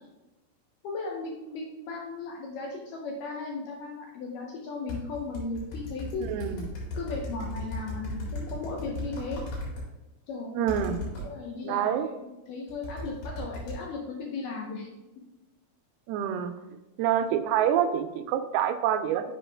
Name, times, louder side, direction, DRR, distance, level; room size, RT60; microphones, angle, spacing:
voice 1, 0.8-6.2 6.9-9.4 10.3-14.9, left 3 dB, 80° left, 0 dB, 1.9 m, -36 dB
sound 1, 4.9-9.8 10.7-11.3 12.7-13.8, left 1 dB, 55° left, 3.2 m, -36 dB
voice 2, 6.3-6.7 10.6-11.1 11.6-12.1 16.1-16.5 17.0-19.3, right 9 dB, 85° right, 9 dB, 2.4 m, -27 dB
6.9 x 5.0 x 3.3 m, 1.1 s
omnidirectional pair, 4.5 m